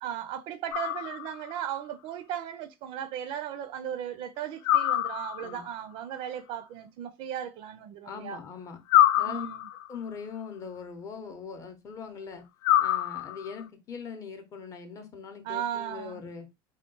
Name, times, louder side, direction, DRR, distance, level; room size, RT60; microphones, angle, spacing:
voice 1, 0.0-8.4 9.2-9.7 15.4-16.2, right 10 dB, 50° right, 0.4 m, -36 dB
sound 1, 0.7-1.6 4.6-5.7 8.9-10.0 12.6-13.6, left 13 dB, 85° left, 0.4 m, -25 dB
voice 2, 8.0-8.8 9.2-9.5 9.9-12.4 12.8-16.5, left 6 dB, 30° left, 0.6 m, -41 dB
3.6 x 2.2 x 3.7 m
cardioid pair, 165°, 11 cm